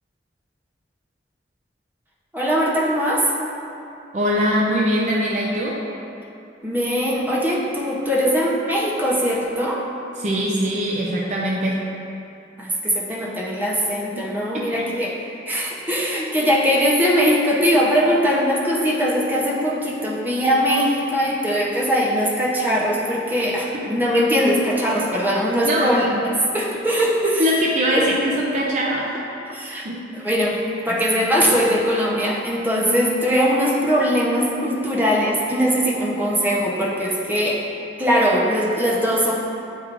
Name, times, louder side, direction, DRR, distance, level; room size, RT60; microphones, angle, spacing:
voice 1, 2.3-3.3 6.6-9.8 12.6-15.1 15.5-27.5 27.9-28.1 29.5-29.8 30.2-30.6 30.9-37.6 38.0-39.3, equal, 10° right, -5 dB, 0.8 m, -21 dB
voice 2, 4.1-5.8 10.2-11.8 14.2-14.3 14.5-14.9 25.6-25.9 27.4-29.1 29.8-30.0 30.9-31.0, equal, 40° right, -4 dB, 0.6 m, -22 dB
8.8 x 4.6 x 2.5 m, 2.8 s
head